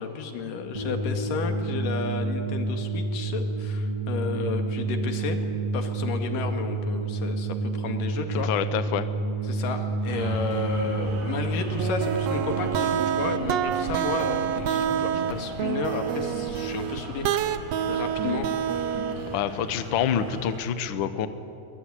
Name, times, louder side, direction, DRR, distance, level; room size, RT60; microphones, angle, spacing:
voice 1, 0.0-5.4 5.7-8.5 9.5-17.6 17.9-18.5, left 5 dB, 85° left, 6 dB, 3.6 m, -32 dB
sound 1, 0.8-13.9, right 3 dB, 50° right, 3.7 m, -29 dB
voice 2, 8.4-9.1 19.3-21.3, left 8 dB, 65° left, 12 dB, 1.2 m, -27 dB
sound 2, 10.1-20.7, right 1 dB, 85° right, 4.6 m, -40 dB
sound 3, 11.8-19.4, right 9 dB, 70° right, 1.8 m, -27 dB
22.0 x 21.0 x 9.9 m, 2.7 s
omnidirectional pair, 3.7 m